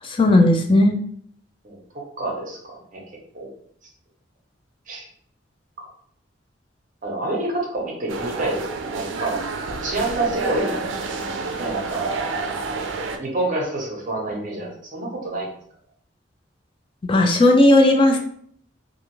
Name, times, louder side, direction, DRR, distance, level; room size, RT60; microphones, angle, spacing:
voice 1, 0.0-0.9 17.1-18.2, left 1 dB, 30° left, 3 dB, 0.3 m, -15 dB
voice 2, 1.6-3.0 3.3-3.5 4.9-5.1 7.0-9.4 9.8-10.8 11.6-12.5 13.2-15.5, right 2 dB, 45° right, -1 dB, 0.7 m, -27 dB
sound 1, 8.1-13.2, right 3 dB, 90° right, 0.4 m, -29 dB
2.4 x 2.4 x 3.0 m, 0.63 s
head